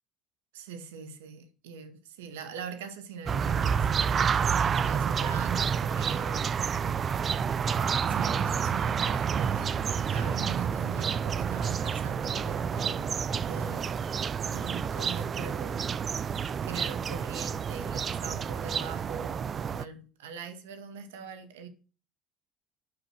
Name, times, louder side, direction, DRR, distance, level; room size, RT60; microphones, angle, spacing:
voice 1, 0.5-6.5 7.8-13.2 13.4-14.1 14.4-21.7, right 6 dB, 80° right, 1.7 m, -42 dB
sound 1, 3.3-19.8, right 7 dB, 40° right, 0.6 m, -29 dB
11.0 x 6.4 x 6.2 m
hypercardioid pair, 70°, 0 cm